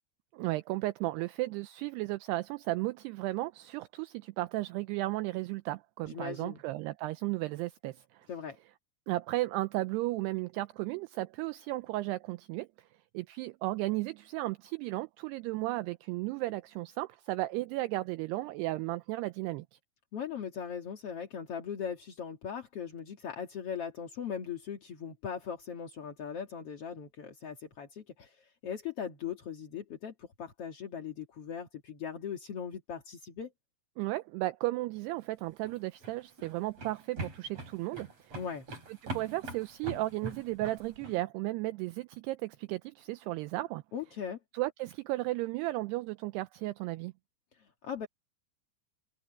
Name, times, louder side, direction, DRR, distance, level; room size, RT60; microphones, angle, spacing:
voice 1, 0.3-8.3 9.1-12.9 13.1-19.7 34.0-38.4 39.0-43.8 44.5-47.1, right 18 dB, 85° right, 2.4 m, -34 dB
voice 2, 6.0-6.6 8.3-8.6 20.1-33.5 38.3-38.7 43.9-44.4 47.5-48.1, left 7 dB, 50° left, 1.9 m, -39 dB
sound 1, 35.5-41.2, right 2 dB, 35° right, 7.2 m, -43 dB
open air
omnidirectional pair, 5.2 m